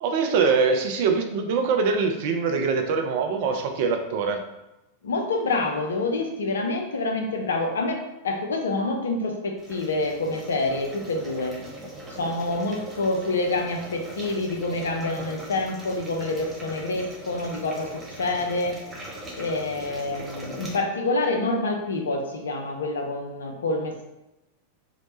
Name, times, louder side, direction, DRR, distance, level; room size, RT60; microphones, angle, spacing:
voice 1, 0.0-4.4, right 5 dB, 50° right, 4 dB, 0.4 m, -23 dB
voice 2, 5.0-11.6 12.1-18.8 19.4-24.1, left 2 dB, 65° left, 2 dB, 0.4 m, -27 dB
sound 1, 9.6-20.8, right 1 dB, 10° right, 0.7 m, -40 dB
2.8 x 2.1 x 2.9 m, 0.95 s
figure-of-eight pair, 90°, 0 cm